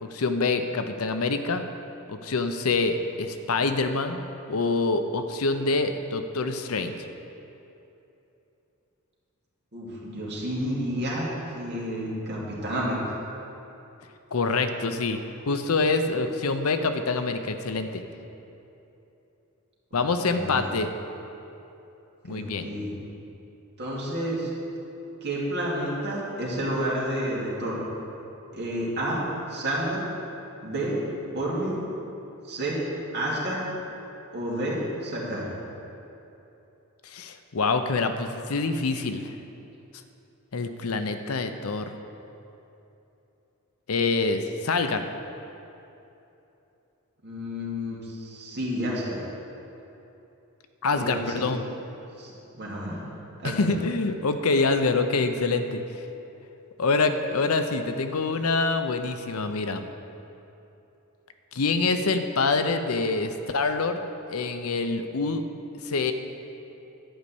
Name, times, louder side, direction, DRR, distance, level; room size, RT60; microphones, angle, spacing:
voice 1, 0.0-1.6 2.1-6.9 14.3-15.2 15.5-18.0 19.9-20.9 22.2-22.7 37.0-39.3 40.5-42.0 43.9-45.0 50.8-51.6 53.4-55.8 56.8-59.8 61.5-64.0 64.3-65.5 65.8-66.1, left 3 dB, 75° left, 8 dB, 0.7 m, -26 dB
voice 2, 9.7-13.0 19.9-20.0 20.3-20.7 22.3-22.9 23.8-24.5 25.2-27.8 28.5-29.2 29.5-30.0 30.6-31.0 31.3-31.7 32.4-32.8 33.1-33.6 34.3-35.5 47.2-49.2 50.9-51.4 52.2-53.0 53.4-53.6, right 1 dB, 50° right, -5 dB, 2.7 m, -30 dB
11.5 x 5.4 x 8.5 m, 2.9 s
head